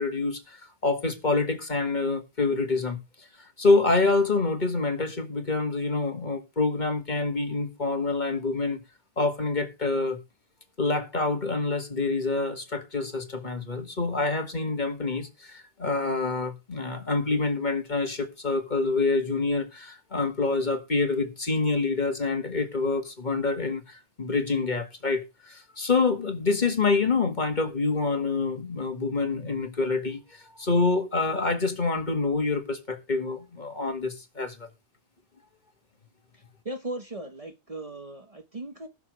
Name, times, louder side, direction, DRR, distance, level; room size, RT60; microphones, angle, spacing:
voice 1, 0.0-8.8 9.2-10.2 10.8-34.7, left 3 dB, 45° left, 2.1 m, -27 dB
voice 2, 36.6-38.9, right 2 dB, 35° right, 1.1 m, -37 dB
20.0 x 6.7 x 3.3 m
omnidirectional pair, 1.1 m